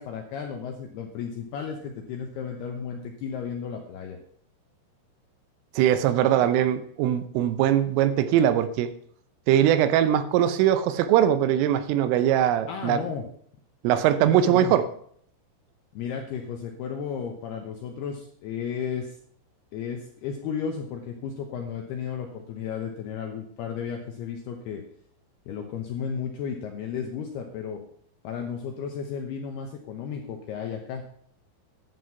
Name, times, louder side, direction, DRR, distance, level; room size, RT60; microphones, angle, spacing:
voice 1, 0.0-4.2 12.7-13.3 14.3-14.7 15.9-19.2 19.7-24.8 25.5-27.8 28.2-31.0, left 7 dB, 75° left, 3 dB, 2.4 m, -34 dB
voice 2, 5.8-8.9 9.5-13.0 13.8-14.9, right 10 dB, 80° right, 12 dB, 3.3 m, -21 dB
11.5 x 7.9 x 5.7 m, 0.64 s
omnidirectional pair, 5.9 m